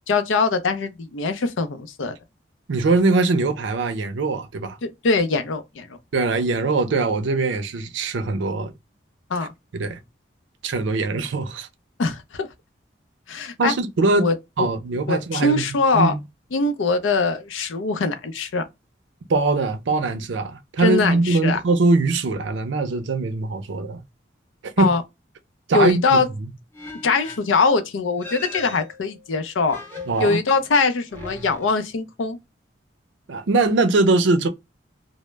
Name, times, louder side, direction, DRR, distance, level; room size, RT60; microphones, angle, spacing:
voice 1, 0.1-2.2 4.8-6.0 9.3-9.5 12.0-12.5 13.3-13.7 14.2-14.7 15.1-16.1 16.5-18.7 20.8-21.6 24.8-25.0 25.7-26.3 27.0-29.8 30.2-32.4, left 4 dB, 90° left, 0.5 m, -22 dB
voice 2, 2.7-4.8 6.1-8.7 9.7-10.0 10.6-11.7 13.6-14.3 14.6-16.2 19.3-24.0 24.6-24.9 25.7-26.5 30.1-30.4 33.3-34.5, right 3 dB, 75° right, 0.5 m, -22 dB
sound 1, 26.7-27.6 28.2-29.3 29.7-30.6 31.1-32.2, left 2 dB, 10° left, 0.5 m, -39 dB
2.0 x 2.0 x 3.2 m
head